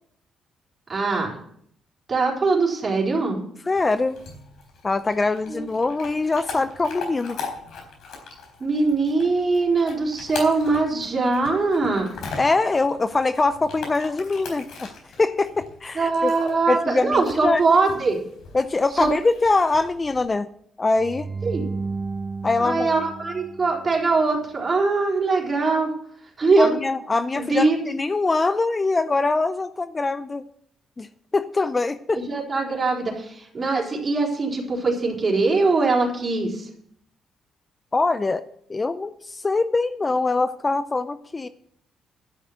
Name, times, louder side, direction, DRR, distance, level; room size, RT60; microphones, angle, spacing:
voice 1, 0.9-1.3 2.1-3.4 5.5-5.6 8.6-12.1 16.0-18.2 19.0-19.1 21.4-21.7 22.6-25.9 26.4-26.7 27.3-27.9 32.1-36.7, right 3 dB, 35° right, -1 dB, 4.0 m, -22 dB
Chewing mastication / Dog, 3.7-20.2, left 4 dB, 75° left, 4.1 m, -40 dB
voice 2, 3.7-4.2 4.8-7.4 12.4-14.9 15.2-16.4 16.7-17.6 18.5-20.5 20.8-21.3 22.4-22.9 26.6-30.4 31.0-31.1 31.3-32.3 37.9-38.4 38.7-41.5, left 3 dB, 25° left, 13 dB, 0.5 m, -23 dB
sound 1, 21.0-24.2, right 4 dB, 20° right, 1.0 m, -33 dB
11.5 x 6.5 x 7.9 m, 0.68 s
cardioid pair, 90°, 0 cm